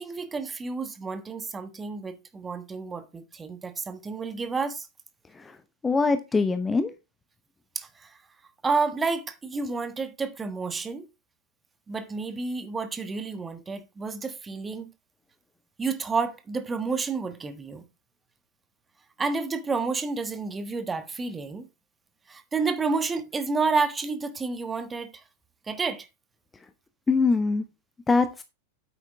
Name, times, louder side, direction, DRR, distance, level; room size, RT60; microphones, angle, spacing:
voice 1, 0.0-4.9 7.7-8.2 8.6-11.1 11.9-14.9 15.8-17.8 19.2-21.7 22.3-25.1 25.7-26.1, right 4 dB, 15° right, 1.3 m, -30 dB
voice 2, 5.8-6.9 27.1-27.6 28.1-28.4, left 4 dB, 15° left, 0.9 m, -22 dB
9.2 x 8.4 x 3.5 m
figure-of-eight pair, 90°, 0 cm